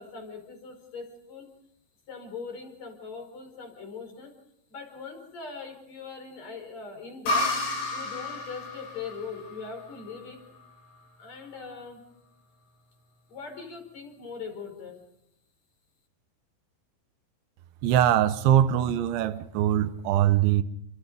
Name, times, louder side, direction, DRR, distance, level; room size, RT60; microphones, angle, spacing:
voice 1, 0.0-1.5 2.1-4.4 4.7-7.5 7.9-10.4 11.2-12.0 13.3-15.0, left 5 dB, 40° left, 5.7 m, -41 dB
sound 1, 7.3-10.8, left 2 dB, 90° left, 7.7 m, -32 dB
voice 2, 17.8-20.6, right 11 dB, 90° right, 3.4 m, -22 dB
29.0 x 24.0 x 5.3 m
omnidirectional pair, 5.2 m